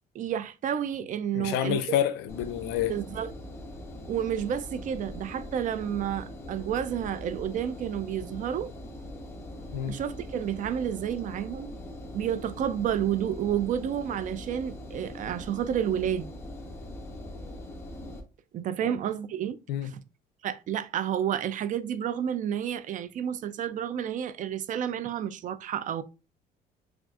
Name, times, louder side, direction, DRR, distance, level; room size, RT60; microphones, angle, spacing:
voice 1, 0.1-1.9 2.9-3.3 4.1-8.7 9.9-11.7 12.1-16.3 18.5-19.6 19.8-20.0 20.4-26.0, right 9 dB, 50° right, 0.4 m, -30 dB
voice 2, 1.3-3.0 9.7-9.9 18.8-19.0 19.7-19.9, left 11 dB, 90° left, 0.4 m, -28 dB
Engine, 2.3-18.2, left 1 dB, 15° left, 0.9 m, -42 dB
6.0 x 2.4 x 2.4 m
cardioid pair, 110°, 17 cm